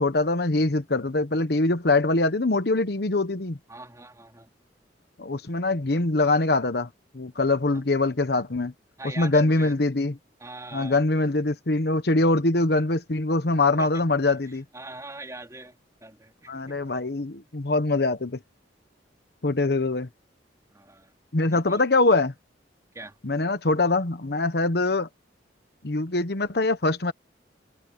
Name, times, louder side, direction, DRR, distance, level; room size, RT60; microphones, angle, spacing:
voice 1, 0.0-3.6 5.2-8.7 9.2-10.1 10.7-14.6 16.5-18.4 19.4-20.1 21.3-22.3 23.2-25.1 25.8-27.1, left 2 dB, 60° left, 1.1 m, -23 dB
voice 2, 3.7-4.5 9.0-9.8 10.4-11.0 13.8-14.2 14.7-16.8 20.7-21.1 21.5-21.8 22.9-23.2, right 2 dB, 20° right, 4.0 m, -42 dB
head